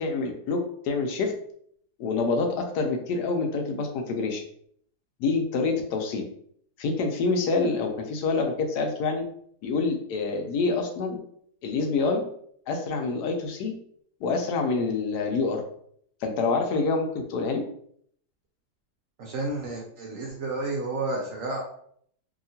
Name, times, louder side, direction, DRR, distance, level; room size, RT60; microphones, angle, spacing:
voice 1, 0.0-1.3 2.0-4.4 5.2-6.2 6.8-9.2 9.6-11.2 11.6-12.3 12.7-13.7 14.2-15.6 16.2-17.6, left 4 dB, 75° left, 3 dB, 1.1 m, -26 dB
voice 2, 19.2-21.6, right 2 dB, 65° right, -1 dB, 0.9 m, -31 dB
2.8 x 2.8 x 2.7 m, 0.65 s
omnidirectional pair, 1.8 m